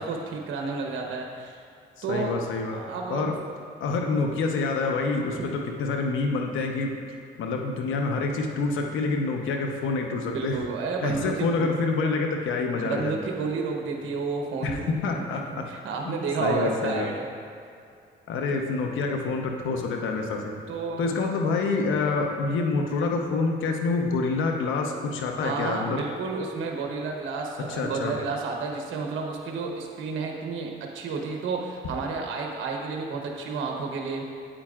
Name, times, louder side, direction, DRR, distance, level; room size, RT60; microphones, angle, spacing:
voice 1, 0.0-1.6 2.0-2.4 2.7-3.3 5.3-5.5 10.3-11.7 12.8-14.8 15.1-15.2 15.7-17.2 20.7-21.3 25.4-30.7 30.9-34.2, right 4 dB, 80° right, 1 dB, 1.0 m, -31 dB
voice 2, 2.1-2.8 3.1-3.4 3.8-6.9 7.4-10.6 11.0-13.1 14.6-15.6 16.0-17.1 18.3-20.5 21.0-26.0 27.6-28.2, left 3 dB, 80° left, 2 dB, 0.9 m, -27 dB
8.8 x 8.7 x 2.5 m, 2.4 s
cardioid pair, 90°, 20 cm